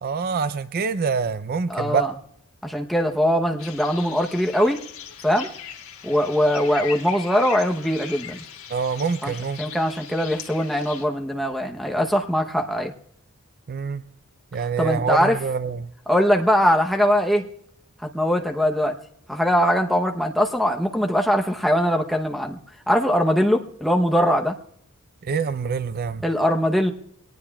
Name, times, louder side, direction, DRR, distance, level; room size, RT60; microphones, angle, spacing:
voice 1, 0.0-2.1 8.7-9.6 13.7-14.0 14.5-15.9 25.3-26.2, right 5 dB, 45° right, 13 dB, 0.4 m, -25 dB
voice 2, 1.7-2.1 2.6-4.8 5.2-5.5 6.0-8.4 9.2-12.9 14.8-15.4 16.1-17.4 18.1-19.0 19.3-22.6 22.9-24.6 26.2-26.9, equal, ahead, 2 dB, 0.8 m, -21 dB
sound 1, 3.6-11.0, left 8 dB, 75° left, 1.7 m, -39 dB
23.0 x 18.5 x 2.3 m, 0.71 s
head